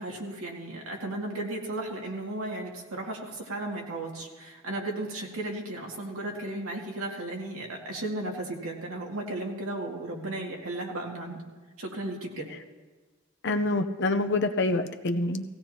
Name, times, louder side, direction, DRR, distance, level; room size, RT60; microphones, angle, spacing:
voice 1, 0.0-11.4 11.8-12.5, right 2 dB, 90° right, -1 dB, 2.2 m, -35 dB
voice 2, 13.4-15.4, left 2 dB, 55° left, 8 dB, 0.7 m, -26 dB
18.5 x 16.0 x 2.9 m, 1.3 s
head